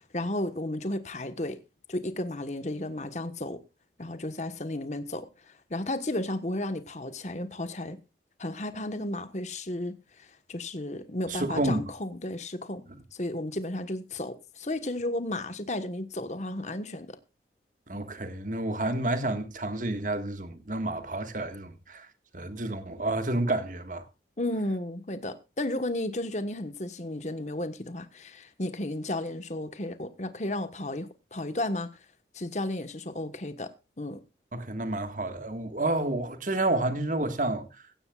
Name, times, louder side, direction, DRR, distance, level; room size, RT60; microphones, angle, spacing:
voice 1, 0.0-1.6 1.9-3.6 4.0-8.0 8.4-12.8 13.1-17.2 24.4-31.9 32.3-34.2, left 1 dB, 40° left, 1.3 m, -33 dB
voice 2, 11.3-11.8 17.9-22.1 22.3-24.1 34.5-37.8, right 2 dB, 45° right, 1.7 m, -30 dB
16.0 x 16.0 x 2.4 m
head